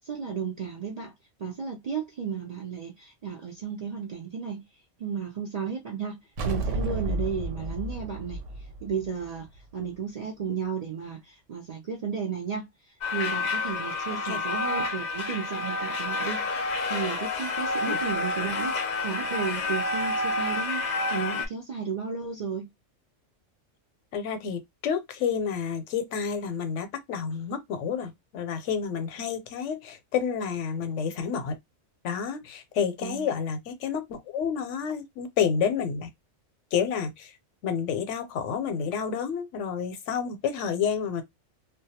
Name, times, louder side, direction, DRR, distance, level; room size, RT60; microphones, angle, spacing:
voice 1, 0.0-1.1 1.4-4.6 5.0-8.4 8.8-9.5 9.7-12.7 13.1-20.9 21.1-22.7 33.0-33.3, right 6 dB, 65° right, 0.4 m, -33 dB
sound 1, 6.4-9.8, right 2 dB, 85° right, 0.9 m, -32 dB
sound 2, 13.0-21.5, left 3 dB, 50° left, 0.5 m, -29 dB
voice 2, 24.1-31.6 32.0-36.1 36.7-37.3 37.6-41.2, left 7 dB, 80° left, 0.9 m, -29 dB
2.2 x 2.2 x 2.7 m
omnidirectional pair, 1.2 m